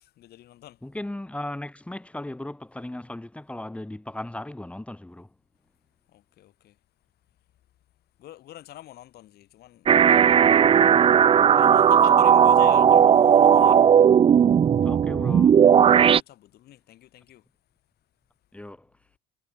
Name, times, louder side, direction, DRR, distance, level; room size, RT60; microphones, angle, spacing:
voice 1, 0.0-0.8 6.1-6.8 8.2-10.7 11.1-11.2 11.5-13.9 16.2-17.5, left 13 dB, 70° left, 6.8 m, -46 dB
voice 2, 0.8-5.3 14.8-15.6 18.5-18.9, left 1 dB, 5° left, 3.8 m, -36 dB
sound 1, 9.9-16.2, right 8 dB, 35° right, 0.5 m, -16 dB
cardioid pair, 110°, 17 cm